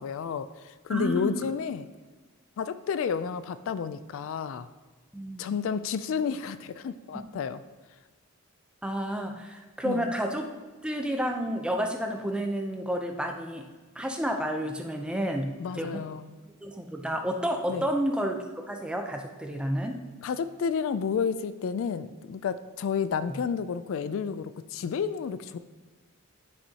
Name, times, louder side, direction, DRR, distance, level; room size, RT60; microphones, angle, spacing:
voice 1, 0.0-1.9 2.6-4.7 5.4-7.6 9.8-10.1 15.6-16.4 17.7-17.8 20.2-25.6, left 6 dB, 65° left, 13 dB, 0.3 m, -31 dB
voice 2, 0.9-1.3 5.1-5.5 7.1-7.2 8.8-10.5 10.8-13.6 13.9-16.0 16.6-18.4 18.7-20.0, equal, 5° right, 3 dB, 0.6 m, -30 dB
11.0 x 6.1 x 2.8 m, 1.3 s
head